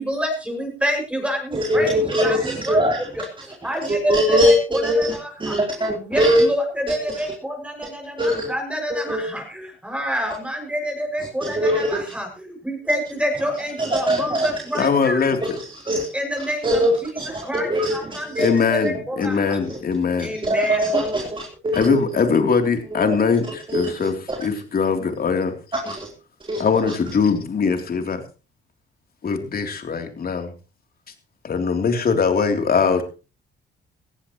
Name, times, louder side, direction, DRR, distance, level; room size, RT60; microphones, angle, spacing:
voice 1, 0.0-2.8 3.4-15.4 16.1-17.1 17.4-19.6 20.2-21.1, equal, 5° right, 6.5 m, -28 dB
voice 2, 1.5-3.1 3.8-6.4 6.9-7.0 8.2-8.5 8.9-9.3 11.4-12.0 13.8-14.5 15.4-16.1 16.6-18.5 19.6-19.8 20.4-22.0 22.9-23.2 23.4-24.4 25.7-26.1 26.4-26.9, equal, 25° right, 3.8 m, -22 dB
voice 3, 14.8-15.4 18.4-20.3 21.7-24.1 24.4-25.5 26.6-28.2 29.2-30.5 31.4-33.0, left 5 dB, 50° left, 3.3 m, -21 dB
18.5 x 15.0 x 3.1 m
cardioid pair, 90°, 20 cm